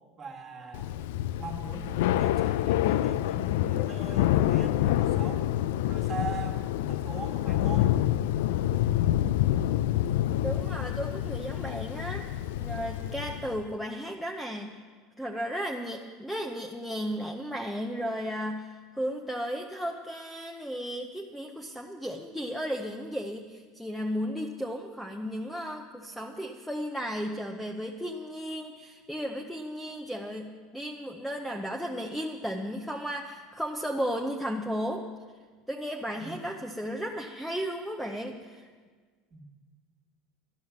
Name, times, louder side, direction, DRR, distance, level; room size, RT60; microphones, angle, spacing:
voice 1, 0.2-0.9 1.4-5.6 5.9-8.0 36.2-36.3 39.3-39.4, right 4 dB, 25° right, 2 dB, 1.6 m, -41 dB
Thunder / Rain, 0.7-13.6, left 13 dB, 90° left, 0.4 m, -27 dB
voice 2, 10.4-14.7 15.2-35.1 35.7-38.7, equal, ahead, 1 dB, 0.6 m, -34 dB
12.0 x 11.5 x 7.2 m, 1.5 s
cardioid pair, 175°, 0 cm